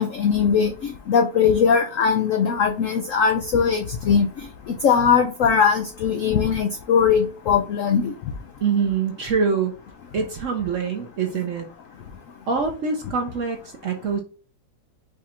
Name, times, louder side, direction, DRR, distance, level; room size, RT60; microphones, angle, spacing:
voice 1, 0.0-4.3 4.8-8.1, left 6 dB, 90° left, 4 dB, 0.6 m, -20 dB
voice 2, 8.6-9.7 10.1-11.7 12.5-14.2, right 5 dB, 60° right, 3 dB, 0.8 m, -24 dB
5.1 x 2.4 x 4.3 m, 0.36 s
omnidirectional pair, 2.0 m